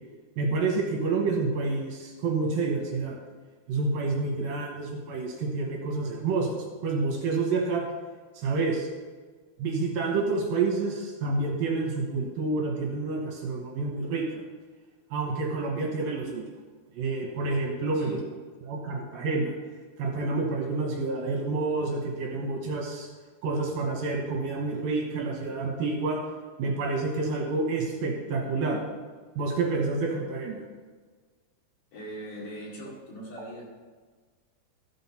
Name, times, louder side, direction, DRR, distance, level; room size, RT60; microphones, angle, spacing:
voice 1, 0.4-3.2 3.7-6.6 6.8-7.8 8.3-8.9 9.6-14.4 15.1-16.4 16.9-18.2 18.6-19.5 20.0-23.1 23.4-26.2 26.6-28.8 29.4-30.7, right 3 dB, 70° right, -1 dB, 2.8 m, -28 dB
voice 2, 17.9-18.3 31.9-33.6, equal, 55° left, -5 dB, 3.8 m, -40 dB
14.5 x 6.4 x 4.3 m, 1.5 s
omnidirectional pair, 4.7 m